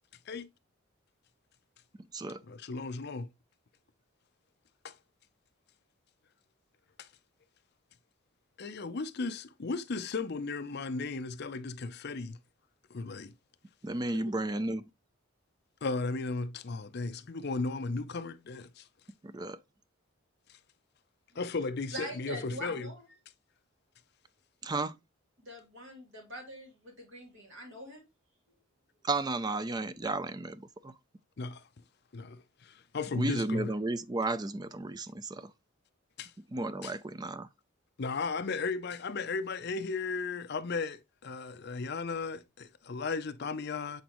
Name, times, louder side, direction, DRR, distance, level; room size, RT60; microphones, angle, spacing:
voice 1, 2.4-3.3 4.8-5.0 7.0-7.1 8.6-12.4 12.9-13.3 14.1-14.2 15.8-18.9 20.5-20.6 21.4-22.9 31.4-31.6 32.1-33.7 36.2-36.3 36.8-36.9 38.0-44.0, left 4 dB, 50° left, 0.5 m, -35 dB
voice 2, 13.8-14.8 19.2-19.6 24.6-25.0 29.0-30.9 33.2-35.5 36.5-37.5, right 2 dB, 20° right, 0.4 m, -33 dB
voice 3, 21.9-23.0 25.4-28.0, right 1 dB, 60° right, 3.0 m, -44 dB
8.1 x 3.9 x 3.0 m
head